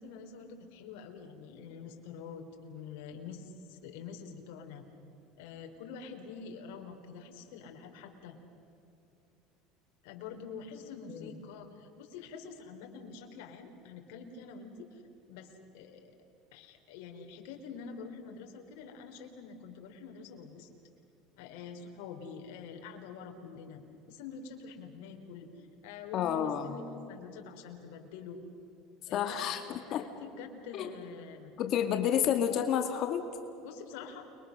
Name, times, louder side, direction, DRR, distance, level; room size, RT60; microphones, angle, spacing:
voice 1, 0.0-4.8 5.4-8.4 10.0-15.0 15.3-16.1 16.5-20.7 21.4-26.8 27.1-28.4 29.1-31.6 33.6-34.3, left 6 dB, 85° left, 3 dB, 4.0 m, -46 dB
voice 2, 26.1-26.7 29.1-30.0 30.7-30.9 31.6-33.2, left 9 dB, 50° left, 6 dB, 2.1 m, -30 dB
29.5 x 23.5 x 6.6 m, 2.9 s
cardioid pair, 130°, 0 cm